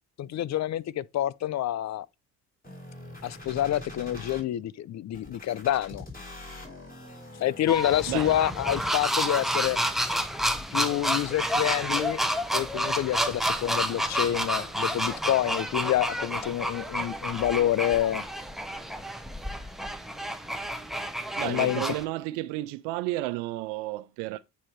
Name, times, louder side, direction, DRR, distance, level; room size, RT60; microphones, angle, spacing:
voice 1, 0.2-2.1 3.2-6.1 7.4-9.8 10.7-12.2 12.5-18.2 21.4-21.8, left 12 dB, 40° left, 0.5 m, -27 dB
sound 1, 2.6-4.4 5.1-9.2 9.6-10.6, left 2 dB, 20° left, 3.6 m, -43 dB
sound 2, 7.7-22.0, equal, ahead, 0.9 m, -30 dB
voice 2, 21.4-24.4, right 18 dB, 80° right, 0.5 m, -32 dB
8.5 x 2.9 x 4.5 m
hypercardioid pair, 60°, 43 cm